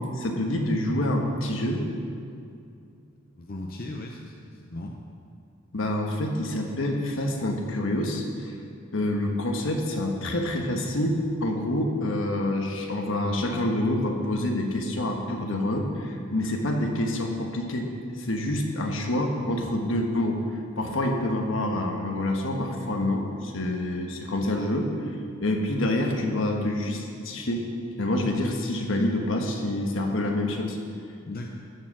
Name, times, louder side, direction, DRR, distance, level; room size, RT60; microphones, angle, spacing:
voice 1, 0.1-1.8 5.7-8.5 8.9-17.9 18.2-24.9 25.4-27.6 28.0-30.8, left 1 dB, 75° left, 2 dB, 1.2 m, -27 dB
voice 2, 3.4-4.9 31.3-31.5, left 1 dB, 50° left, 1 dB, 0.6 m, -37 dB
13.0 x 4.8 x 6.1 m, 2.4 s
head